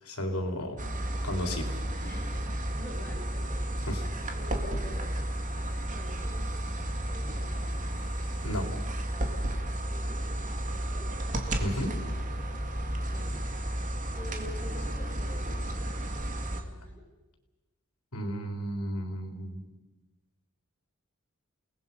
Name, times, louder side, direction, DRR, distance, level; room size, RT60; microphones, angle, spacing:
voice 1, 0.0-0.8 1.2-1.8 3.9-4.0 8.4-8.7 11.6-11.9 18.1-19.6, equal, 90° left, 3 dB, 3.7 m, -33 dB
voice 2, 0.8-1.3 2.0-2.4 2.7-3.7 4.3-5.2 5.6-6.8 7.1-7.7 9.9-11.3 12.8-13.8 14.1-15.7 16.2-17.0, left 2 dB, 10° left, -4 dB, 7.2 m, -48 dB
sound 1, 0.8-16.6, right 1 dB, 35° right, 2.1 m, -32 dB
29.5 x 19.0 x 5.5 m, 1.1 s
head